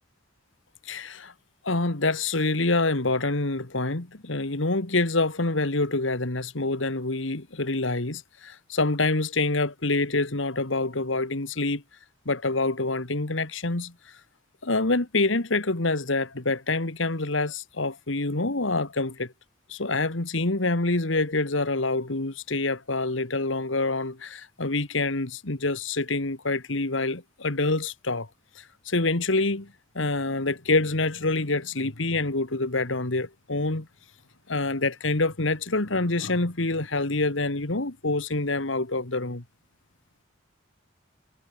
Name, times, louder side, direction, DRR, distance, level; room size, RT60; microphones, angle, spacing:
voice 1, 0.9-1.3 1.6-11.8 12.3-13.9 14.6-19.3 19.7-28.3 28.6-33.9 34.5-39.4, left 2 dB, 75° left, 2.0 m, -26 dB
head